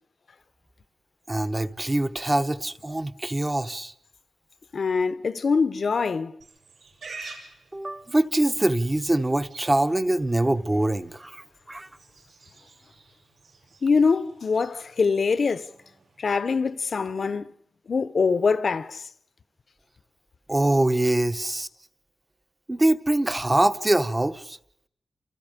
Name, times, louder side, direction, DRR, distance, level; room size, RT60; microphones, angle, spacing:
voice 1, 1.3-3.9 7.7-11.9 20.5-21.7 22.7-24.6, right 1 dB, 15° right, 0.9 m, -24 dB
voice 2, 4.7-6.3 13.8-15.7 16.2-17.5 17.9-19.1, left 5 dB, 50° left, 0.9 m, -24 dB
Livestock farm animals working animals, 6.4-17.3, right 3 dB, 70° right, 7.6 m, -49 dB
29.5 x 28.5 x 5.2 m
wide cardioid pair, 130°, 0 cm